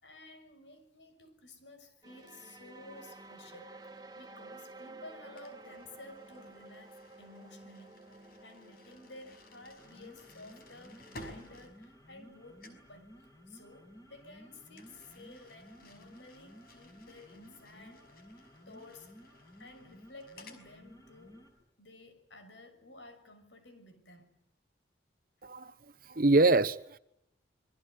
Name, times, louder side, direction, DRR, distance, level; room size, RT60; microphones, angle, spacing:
voice 1, 0.0-3.8 4.2-8.0 8.4-18.4 18.7-19.2 19.6-21.4 21.8-24.3, left 2 dB, 80° left, 8 dB, 6.4 m, -53 dB
sound 1, 2.0-11.7, right 2 dB, 20° right, 1.7 m, -53 dB
sound 2, 5.4-12.3 12.6-12.9 14.7-20.7, left 1 dB, 55° left, 5.6 m, -56 dB
sound 3, 9.6-21.6, equal, 20° left, 6.2 m, -56 dB
voice 2, 26.1-27.0, right 2 dB, 50° right, 14 dB, 1.0 m, -24 dB
27.5 x 22.5 x 8.2 m, 0.79 s
head